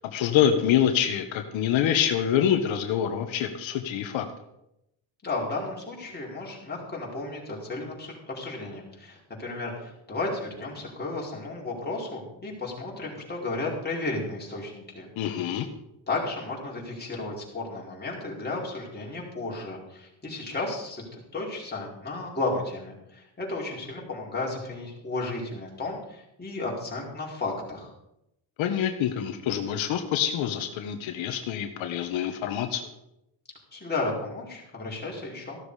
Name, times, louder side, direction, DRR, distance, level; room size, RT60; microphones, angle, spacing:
voice 1, 0.1-4.2 15.2-15.7 28.6-32.9, left 9 dB, 85° left, 5 dB, 1.4 m, -26 dB
voice 2, 5.2-15.1 16.1-27.9 33.7-35.6, left 2 dB, 20° left, -3 dB, 4.8 m, -33 dB
14.5 x 12.5 x 5.0 m, 0.84 s
cardioid pair, 130°, 45 cm